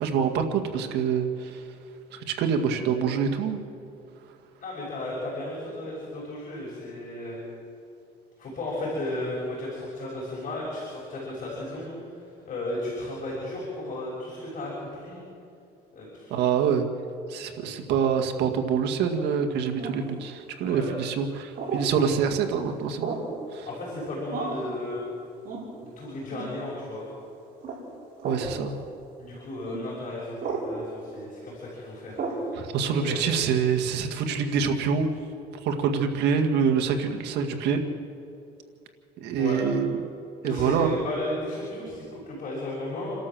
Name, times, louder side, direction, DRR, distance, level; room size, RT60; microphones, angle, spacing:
voice 1, 0.0-1.6 2.1-3.6 16.3-16.9 17.3-23.2 23.5-23.7 28.2-28.8 32.6-35.1 35.6-37.8 39.2-40.0 40.4-40.9, right 6 dB, 80° right, 5 dB, 1.9 m, -26 dB
voice 2, 4.6-7.4 8.4-12.1 12.4-15.2 15.9-16.4 20.6-21.0 23.6-25.0 25.8-27.1 29.2-30.4 30.7-32.5 33.0-33.2 39.4-39.6 40.4-43.1, left 1 dB, 50° left, -5 dB, 6.7 m, -34 dB
sound 1, 19.8-20.1 21.6-21.9 23.0-23.3 24.3-24.7 25.4-25.7 26.3-26.5 27.6-27.8 28.2-28.5 29.6-29.8 30.4-30.7 32.2-32.4, right 4 dB, 55° right, 5.9 m, -32 dB
28.5 x 12.5 x 7.6 m, 2.6 s
cardioid pair, 110°, 17 cm